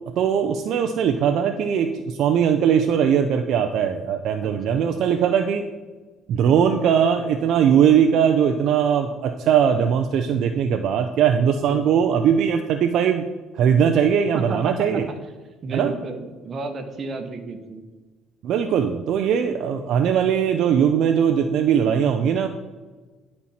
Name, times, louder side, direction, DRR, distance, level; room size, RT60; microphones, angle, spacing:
voice 1, 0.2-5.6 6.3-13.3 13.6-15.1 15.7-15.9 18.4-22.5, right 8 dB, 60° right, 6 dB, 0.5 m, -20 dB
voice 2, 4.4-5.1 11.7-12.0 14.3-15.2 15.6-17.8, right 3 dB, 40° right, 6 dB, 1.0 m, -33 dB
10.5 x 4.3 x 4.2 m, 1.3 s
cardioid pair, 125°, 0 cm